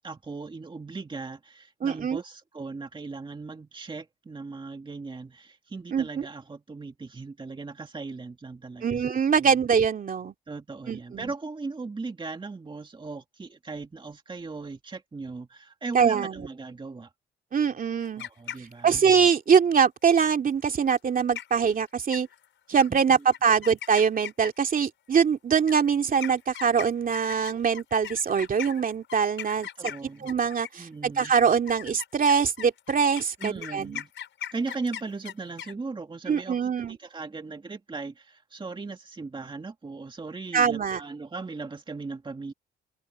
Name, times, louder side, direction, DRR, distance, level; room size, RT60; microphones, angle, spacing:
voice 1, 0.0-9.0 9.4-9.6 10.5-17.1 18.2-19.1 22.9-23.3 29.8-30.3 30.7-31.3 33.4-34.1 34.5-42.5, right 3 dB, 25° right, 2.1 m, -38 dB
voice 2, 1.8-2.2 5.9-6.1 8.8-10.3 10.9-11.3 15.9-16.5 17.5-18.2 18.8-22.3 22.7-29.7 30.2-34.0 36.3-37.0 40.5-41.0, right 6 dB, 45° right, 2.6 m, -23 dB
sound 1, 18.0-19.0 21.0-21.1 21.3-21.7 22.1-22.4 22.8-22.9 23.3-24.7 25.6-30.8 31.2-35.7, left 10 dB, 70° left, 4.8 m, -39 dB
cardioid pair, 90°, 20 cm